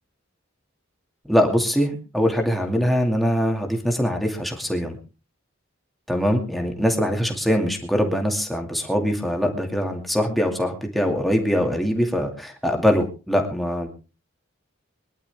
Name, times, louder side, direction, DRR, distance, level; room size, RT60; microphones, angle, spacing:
voice 1, 1.3-5.0 6.1-13.9, equal, ahead, 2 dB, 2.4 m, -22 dB
22.5 x 11.5 x 3.5 m, 0.33 s
head